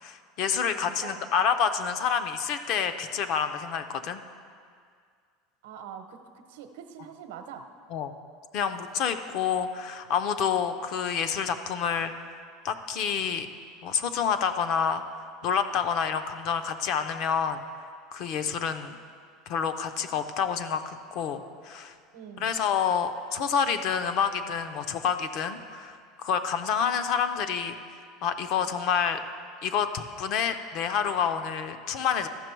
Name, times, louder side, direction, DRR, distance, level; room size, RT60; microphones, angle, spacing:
voice 1, 0.0-4.2 7.9-8.1 8.5-12.1 12.6-13.5 13.8-15.0 15.4-17.6 18.1-19.0 19.5-21.9 22.4-27.8 28.2-29.2 29.6-32.3, left 7 dB, 40° left, 10 dB, 0.5 m, -28 dB
voice 2, 0.7-1.3 5.6-6.2 6.5-7.7 22.1-22.5, right 8 dB, 85° right, 7 dB, 0.8 m, -43 dB
13.5 x 6.0 x 4.5 m, 2.1 s
cardioid pair, 175°, 0 cm